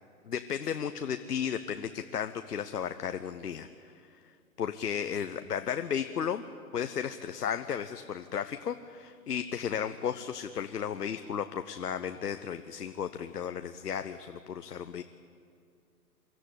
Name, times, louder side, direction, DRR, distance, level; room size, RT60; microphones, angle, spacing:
voice 1, 0.3-4.2 4.6-6.4 6.7-15.0, left 8 dB, 80° left, 9 dB, 0.9 m, -34 dB
23.5 x 13.0 x 8.4 m, 2.3 s
figure-of-eight pair, 130°, 46 cm